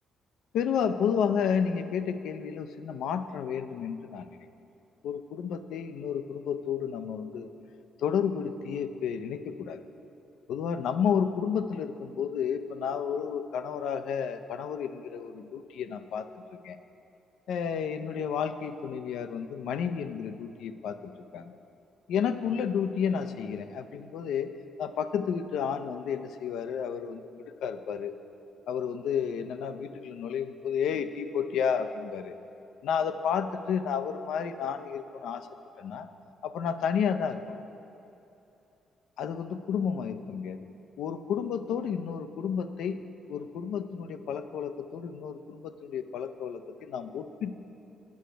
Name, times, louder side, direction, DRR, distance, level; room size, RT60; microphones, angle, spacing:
voice 1, 0.5-4.3 5.0-7.5 8.0-9.8 10.5-16.8 17.5-21.6 22.1-24.5 24.8-28.1 28.7-32.4 32.8-35.5 35.8-36.1 36.4-37.6 39.2-40.7 41.0-43.0 43.3-47.5, left 7 dB, 80° left, 10 dB, 0.4 m, -31 dB
8.3 x 5.6 x 5.1 m, 2.8 s
cardioid pair, 90°, 0 cm